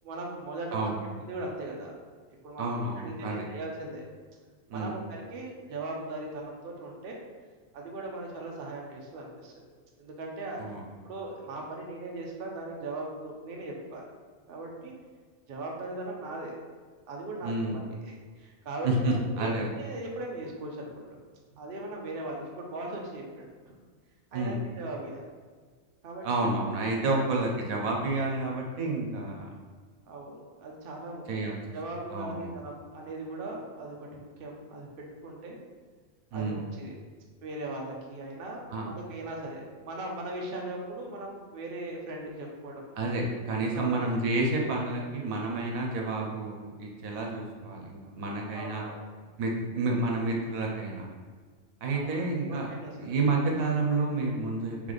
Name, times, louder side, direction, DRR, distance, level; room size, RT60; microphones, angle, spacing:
voice 1, 0.0-0.9 1.2-1.9 2.4-2.7 3.0-4.0 4.7-5.0 5.3-7.2 7.7-9.6 10.0-10.6 11.0-14.0 14.5-14.9 15.5-16.6 17.1-21.1 21.6-23.8 24.3-25.2 26.0-26.3 27.1-27.2 30.1-35.6 36.3-36.9 37.4-42.9 43.7-44.0 44.6-44.7 48.5-49.0 51.9-52.2 52.5-52.9, right 2 dB, 50° right, -1 dB, 0.8 m, -39 dB
voice 2, 0.7-1.1 2.6-3.5 4.7-5.0 10.6-10.8 17.4-17.8 18.8-19.7 24.3-24.6 26.2-29.5 31.3-31.6 32.1-32.6 36.3-36.6 38.7-38.9 43.0-48.9 49.4-51.1 51.8-52.7 53.0-54.9, right 2 dB, 80° right, 0 dB, 1.2 m, -30 dB
3.5 x 3.3 x 3.9 m, 1.5 s
omnidirectional pair, 1.4 m